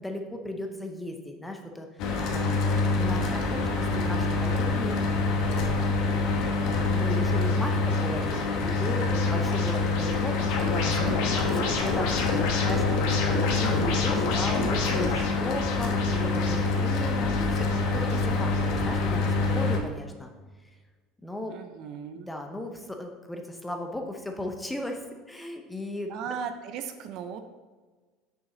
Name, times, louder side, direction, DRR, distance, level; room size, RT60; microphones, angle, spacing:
voice 1, 0.0-6.0 6.9-12.9 13.6-20.3 21.2-21.5 22.1-25.0 25.3-26.1, left 1 dB, 5° left, 3 dB, 0.6 m, -36 dB
Mechanical fan, 2.0-19.8, left 3 dB, 55° left, 0.9 m, -26 dB
voice 2, 3.2-4.6 21.5-22.3 26.1-27.4, right 7 dB, 50° right, 8 dB, 0.5 m, -38 dB
sound 1, 7.1-18.6, left 3 dB, 70° left, 1.2 m, -32 dB
6.3 x 5.0 x 3.9 m, 1.4 s
cardioid pair, 155°, 0 cm